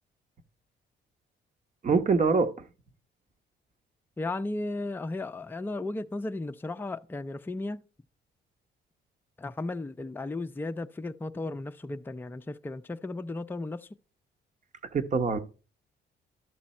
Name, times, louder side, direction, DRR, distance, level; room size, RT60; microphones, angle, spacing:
voice 1, 1.8-2.5 14.9-15.4, right 4 dB, 40° right, 1.1 m, -24 dB
voice 2, 4.2-7.8 9.4-13.9, left 2 dB, 10° left, 0.5 m, -35 dB
12.5 x 6.0 x 4.3 m
cardioid pair, 90°, 20 cm